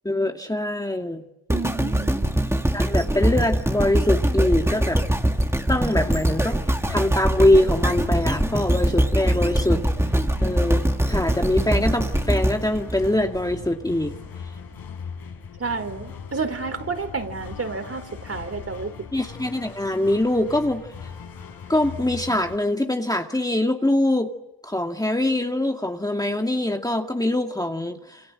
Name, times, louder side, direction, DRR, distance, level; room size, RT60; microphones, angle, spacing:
voice 1, 0.0-1.2 2.7-5.0 5.7-6.6 6.9-9.8 10.4-14.1 19.1-20.8 21.7-24.3 24.6-28.2, left 1 dB, 10° left, 3 dB, 2.3 m, -23 dB
sound 1, 1.5-13.7 14.2-14.3, right 1 dB, 5° right, 2.4 m, -23 dB
voice 2, 1.5-2.3 15.6-18.9, right 4 dB, 40° right, 8 dB, 4.8 m, -30 dB
sound 2, 3.2-22.6, left 6 dB, 65° left, 6.2 m, -39 dB
28.0 x 27.5 x 7.7 m, 0.90 s
cardioid pair, 70°, 38 cm